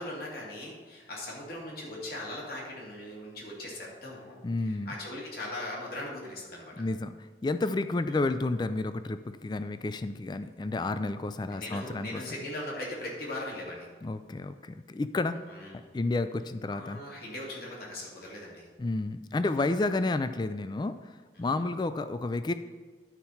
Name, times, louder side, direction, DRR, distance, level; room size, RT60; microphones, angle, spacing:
voice 1, 0.0-4.4 4.7-6.8 8.1-8.2 11.5-13.9 15.5-15.9 16.7-18.7 19.4-19.7 21.4-21.6, left 1 dB, 60° left, -4 dB, 2.4 m, -40 dB
voice 2, 4.4-4.9 6.8-7.1 7.4-12.2 14.0-15.4 15.9-17.0 18.8-22.5, left 2 dB, 25° left, 11 dB, 0.3 m, -31 dB
11.0 x 4.4 x 5.5 m, 1.4 s
head